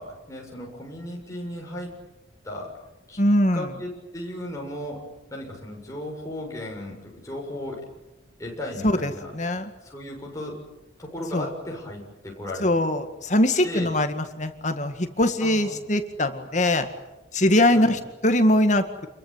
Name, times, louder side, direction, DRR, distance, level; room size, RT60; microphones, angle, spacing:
voice 1, 0.0-2.0 2.4-2.8 3.1-3.2 3.5-5.0 5.3-7.8 8.4-9.3 9.8-10.6 11.0-12.7 13.6-13.9 15.4-15.8 17.7-18.0, left 1 dB, 15° left, -1 dB, 7.0 m, -35 dB
voice 2, 3.2-3.7 8.8-9.7 11.3-11.5 12.6-16.9 17.3-18.8, left 1 dB, 40° left, 8 dB, 2.0 m, -22 dB
28.0 x 22.5 x 9.2 m, 0.97 s
head